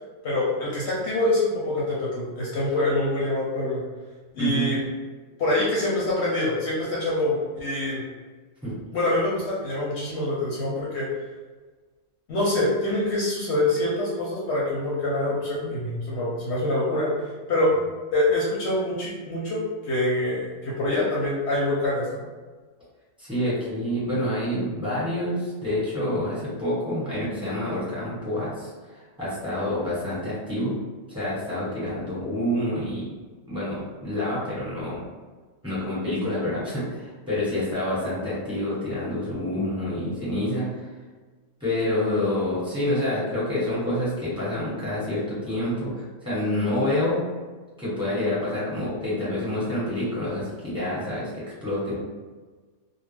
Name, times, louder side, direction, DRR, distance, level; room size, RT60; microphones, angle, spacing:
voice 1, 0.2-3.8 4.3-4.8 5.4-8.0 8.9-11.1 12.3-17.1 17.5-17.8 18.1-22.2, left 1 dB, 60° left, -6 dB, 0.8 m, -25 dB
voice 2, 4.4-4.8 8.6-8.7 23.2-30.7 31.1-33.1 33.5-35.0 35.6-40.8 41.6-47.2 47.8-51.9, left 1 dB, 5° right, -10 dB, 1.0 m, -27 dB
2.3 x 2.1 x 3.2 m, 1.4 s
omnidirectional pair, 1.4 m